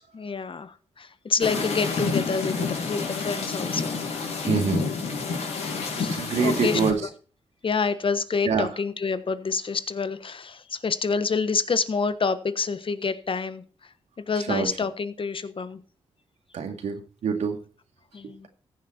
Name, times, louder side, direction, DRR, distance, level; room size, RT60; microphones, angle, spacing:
voice 1, 0.1-4.1 4.4-4.5 5.3-7.1 7.6-13.6 14.2-15.8 18.1-18.5, left 5 dB, 50° left, 13 dB, 1.2 m, -28 dB
sound 1, 1.4-6.9, left 4 dB, 80° left, 4.6 m, -29 dB
voice 2, 4.5-4.8 6.1-7.0 8.5-8.7 14.5-14.7 16.5-17.6, right 6 dB, 85° right, 5 dB, 2.2 m, -25 dB
15.0 x 7.3 x 4.4 m, 0.39 s
cardioid pair, 55°, 11 cm